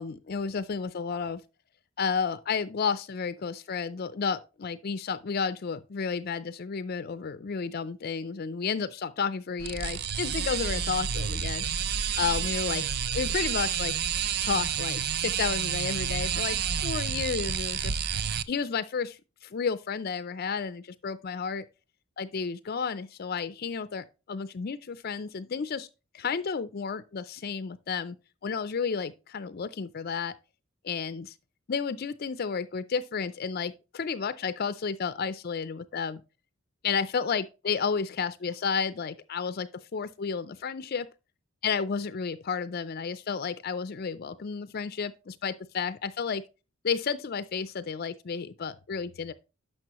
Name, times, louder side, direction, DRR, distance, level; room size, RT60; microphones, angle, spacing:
voice 1, 0.0-1.4 2.0-11.6 12.2-12.8 13.1-13.9 14.4-18.0 18.5-21.6 22.2-25.9 26.1-28.2 28.4-30.3 30.8-31.4 31.7-36.2 36.8-41.1 41.6-46.4 46.8-49.3, left 5 dB, 50° left, 0.4 m, -32 dB
sound 1, 9.6-18.4, right 8 dB, 50° right, 0.5 m, -30 dB
11.0 x 6.3 x 3.0 m
head